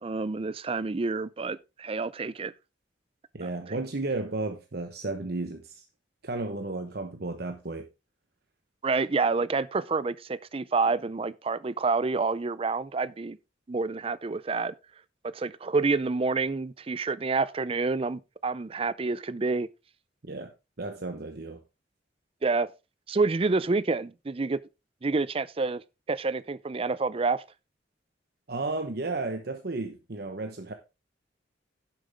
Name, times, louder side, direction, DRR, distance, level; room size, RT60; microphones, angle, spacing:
voice 1, 0.0-2.5 3.4-3.5 8.8-13.4 13.7-14.7 15.2-19.7 22.4-22.7 23.1-24.6 25.0-25.8 26.1-27.4, right 3 dB, 30° right, 0.5 m, -28 dB
voice 2, 3.3-5.8 6.2-7.9 20.3-21.6 28.5-30.7, right 2 dB, 55° right, 1.0 m, -33 dB
10.5 x 7.5 x 3.5 m
head